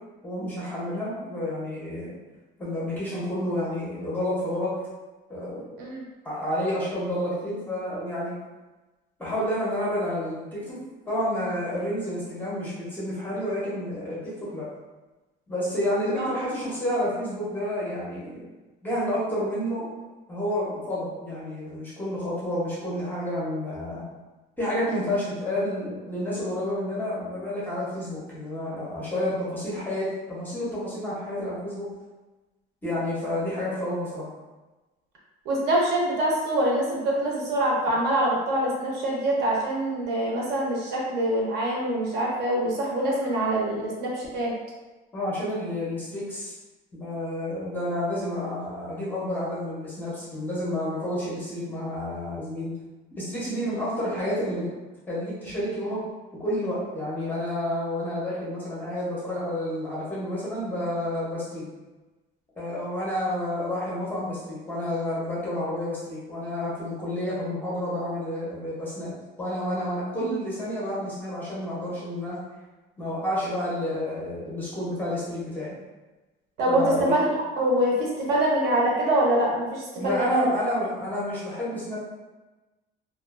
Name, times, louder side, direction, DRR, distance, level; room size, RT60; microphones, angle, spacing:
voice 1, 0.2-2.2 2.6-4.7 5.3-5.7 6.2-8.3 9.2-14.7 15.5-18.5 18.8-19.9 20.3-24.0 24.6-31.9 32.8-34.3 45.1-46.5 47.0-52.7 53.2-54.6 55.1-56.0 56.4-61.7 62.6-69.1 69.4-72.4 73.0-75.7 76.7-77.1 80.0-82.0, left 1 dB, 10° left, -8 dB, 0.5 m, -30 dB
voice 2, 35.5-44.5 76.6-76.8 77.1-77.2 77.6-80.5, right 1 dB, 60° right, -3 dB, 0.7 m, -25 dB
2.3 x 2.3 x 2.3 m, 1.2 s
cardioid pair, 180°, 19 cm